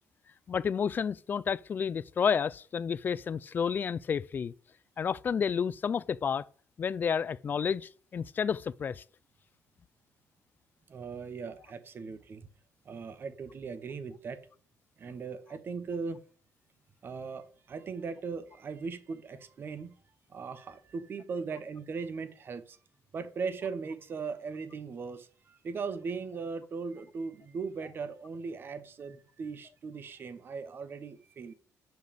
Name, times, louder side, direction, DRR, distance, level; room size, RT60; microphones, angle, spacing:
voice 1, 0.5-4.5 5.0-6.5 6.8-9.0, left 7 dB, 35° left, 0.3 m, -30 dB
voice 2, 10.9-12.5 12.8-14.4 15.0-16.2 17.0-19.9 20.3-22.8 23.1-31.5, right 5 dB, 40° right, 0.9 m, -38 dB
6.2 x 5.2 x 6.7 m
cardioid pair, 140°, 6 cm